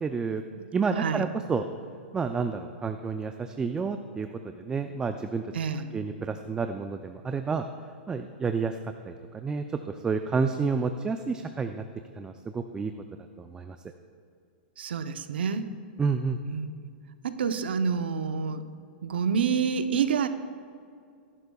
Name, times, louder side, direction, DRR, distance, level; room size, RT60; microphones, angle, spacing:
voice 1, 0.0-0.4 0.7-1.6 2.1-5.4 5.9-7.6 8.1-8.8 9.1-9.8 10.0-11.8 12.2-12.9 13.4-13.8 16.0-16.4, right 5 dB, 15° right, 7 dB, 0.4 m, -30 dB
voice 2, 0.5-1.3 5.5-5.9 14.8-15.7 16.4-16.9 17.2-18.6 19.0-20.3, right 6 dB, 85° right, 9 dB, 0.7 m, -28 dB
18.0 x 11.0 x 2.3 m, 2.4 s
hypercardioid pair, 130°, 5 cm